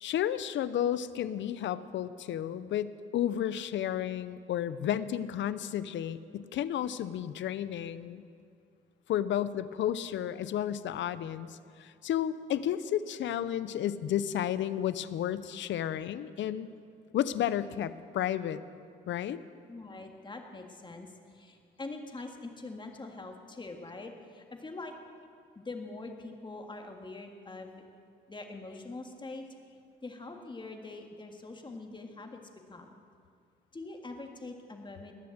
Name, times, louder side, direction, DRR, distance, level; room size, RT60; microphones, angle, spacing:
voice 1, 0.0-8.2 9.1-16.7 17.1-18.6 19.1-19.4, left 10 dB, 70° left, 15 dB, 0.6 m, -32 dB
voice 2, 19.7-24.9 25.6-27.8 28.3-29.5 30.0-32.4 32.7-32.9 33.7-35.1, left 3 dB, 25° left, 4 dB, 1.8 m, -43 dB
20.0 x 6.9 x 8.0 m, 2.4 s
cardioid pair, 90°, 20 cm